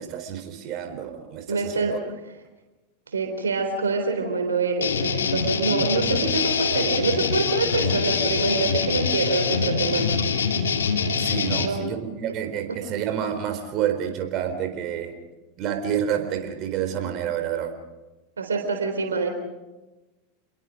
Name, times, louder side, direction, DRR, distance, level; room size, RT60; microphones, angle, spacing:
voice 1, 0.0-2.0 11.2-15.2 15.6-17.7, right 9 dB, 45° right, 6 dB, 4.2 m, -29 dB
voice 2, 1.5-2.0 3.1-10.1 11.6-11.9 18.4-19.3, right 4 dB, 90° right, 5 dB, 3.7 m, -25 dB
sound 1, 4.8-11.7, left 6 dB, 85° left, 2.3 m, -24 dB
29.0 x 21.5 x 5.2 m, 1.1 s
hypercardioid pair, 95°, 0 cm